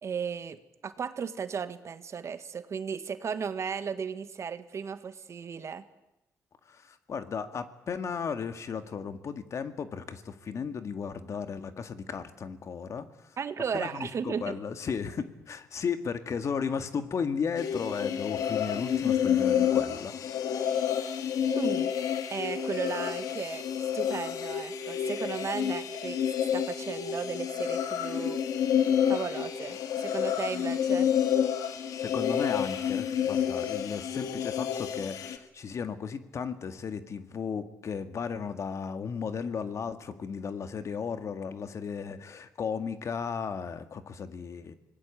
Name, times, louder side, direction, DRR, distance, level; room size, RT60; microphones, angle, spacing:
voice 1, 0.0-5.9 13.4-14.6 21.4-26.2 26.5-28.4 29.1-31.1, right 6 dB, 55° right, 11 dB, 1.7 m, -35 dB
voice 2, 6.7-13.1 13.7-20.1 32.0-44.7, left 6 dB, 55° left, 9 dB, 2.0 m, -35 dB
sound 1, 17.6-35.4, left 9 dB, 85° left, 1.9 m, -29 dB
25.5 x 19.5 x 8.5 m, 0.94 s
cardioid pair, 85°, 6 cm